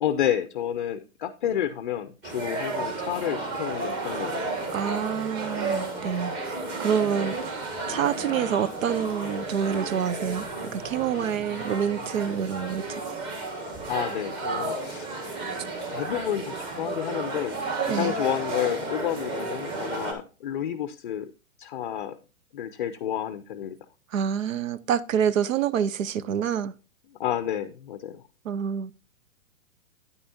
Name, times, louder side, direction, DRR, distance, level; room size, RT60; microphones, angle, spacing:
voice 1, 0.0-4.5 13.8-15.1 15.9-21.3 21.6-22.2 22.5-23.8 27.1-28.2, left 10 dB, 40° left, 0.5 m, -30 dB
sound 1, 2.2-20.1, right 2 dB, 25° right, 1.7 m, -32 dB
voice 2, 4.7-7.4 7.9-10.4 10.7-12.8 17.9-18.1 24.1-26.7 28.5-28.9, right 8 dB, 75° right, 0.8 m, -27 dB
9.4 x 9.0 x 2.6 m
hypercardioid pair, 165°, 40 cm